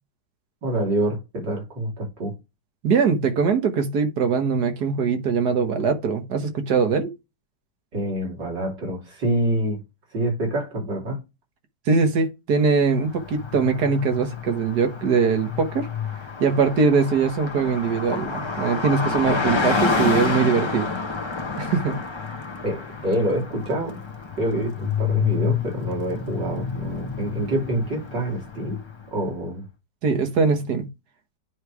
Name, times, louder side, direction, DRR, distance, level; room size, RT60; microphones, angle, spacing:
voice 1, 0.6-2.3 7.9-9.8 10.1-11.2 22.6-24.0 24.4-28.8 29.1-29.7, right 1 dB, 85° right, 3.6 m, -26 dB
voice 2, 2.8-7.1 11.9-15.9 16.4-20.9 21.6-22.0 30.0-30.9, right 5 dB, 65° right, 1.7 m, -22 dB
Car passing by, 13.0-29.1, left 5 dB, 20° left, 0.8 m, -29 dB
9.5 x 3.2 x 4.7 m
omnidirectional pair, 1.9 m